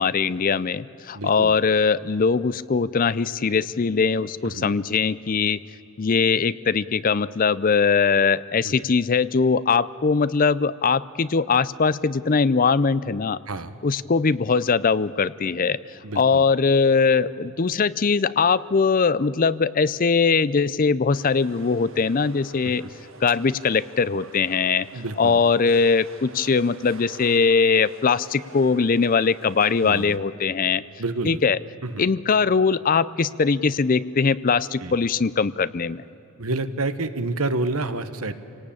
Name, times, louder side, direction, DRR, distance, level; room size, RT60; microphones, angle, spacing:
voice 1, 0.0-5.6 6.0-13.4 13.8-22.9 23.2-24.9 25.2-30.8 31.2-31.6 32.0-36.0, left 5 dB, 40° left, 17 dB, 0.5 m, -21 dB
voice 2, 1.1-1.5 4.4-4.8 8.6-8.7 13.5-13.7 16.0-16.4 24.9-25.4 29.8-30.2 31.0-31.4 31.8-32.1 34.8-35.0 36.4-38.3, right 2 dB, 80° right, 11 dB, 1.3 m, -29 dB
sound 1, 21.1-30.2, right 4 dB, 60° right, 1.5 m, -47 dB
27.0 x 18.5 x 8.7 m, 2.9 s
head